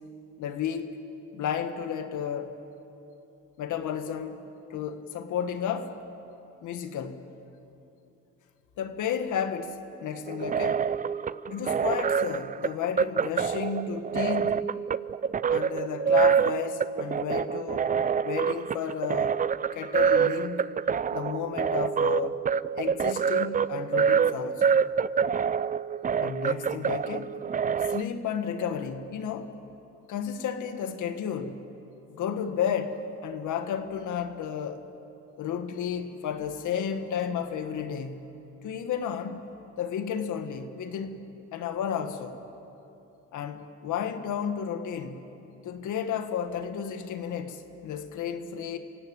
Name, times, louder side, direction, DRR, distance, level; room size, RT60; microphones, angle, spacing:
voice 1, 0.4-1.0 1.3-2.5 3.6-4.5 4.7-6.0 6.6-7.3 8.8-10.9 11.5-14.6 15.5-17.9 18.2-19.4 19.7-20.7 21.1-22.4 22.7-24.8 26.2-27.3 27.9-29.6 30.1-31.6 32.1-34.8 35.4-38.3 38.6-39.5 39.8-41.2 41.5-42.4 43.3-45.3 45.6-48.8, left 8 dB, 80° left, 8 dB, 1.7 m, -32 dB
sound 1, 10.3-28.0, right 7 dB, 30° right, 0.4 m, -26 dB
28.0 x 16.5 x 8.9 m, 2.9 s
cardioid pair, 90°, 30 cm